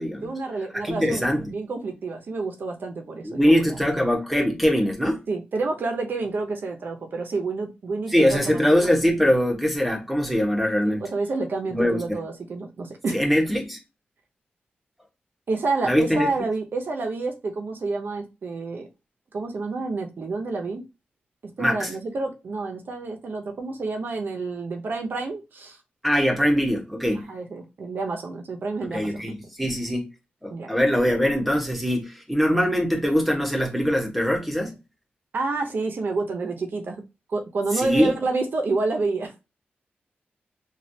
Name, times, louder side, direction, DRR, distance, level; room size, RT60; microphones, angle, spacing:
voice 1, 0.2-3.8 5.3-8.9 10.8-13.2 15.5-18.9 19.3-20.8 21.4-25.8 27.3-29.3 30.5-30.7 35.3-37.0 37.3-39.3, right 3 dB, 60° right, 0.6 m, -29 dB
voice 2, 0.8-1.5 3.2-5.2 8.1-11.0 11.7-12.2 13.1-13.8 15.8-16.3 21.6-21.9 26.0-27.3 28.9-30.1 30.4-34.7 37.7-38.1, equal, ahead, 1.0 m, -22 dB
3.1 x 2.3 x 2.7 m
wide cardioid pair, 110°, 4 cm